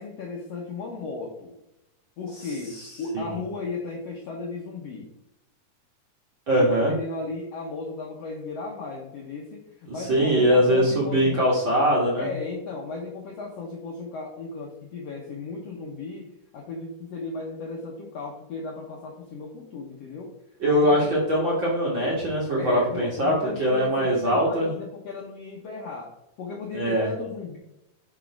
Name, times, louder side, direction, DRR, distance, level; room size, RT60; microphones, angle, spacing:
voice 1, 0.0-1.5 2.2-5.1 6.5-11.4 12.2-20.4 20.7-21.1 22.6-27.6, left 3 dB, 80° left, -1 dB, 1.4 m, -35 dB
voice 2, 6.5-6.9 10.0-12.3 20.6-23.3 23.6-24.7 26.7-27.1, equal, 50° right, -5 dB, 1.5 m, -22 dB
6.2 x 5.4 x 4.7 m, 0.87 s
omnidirectional pair, 4.2 m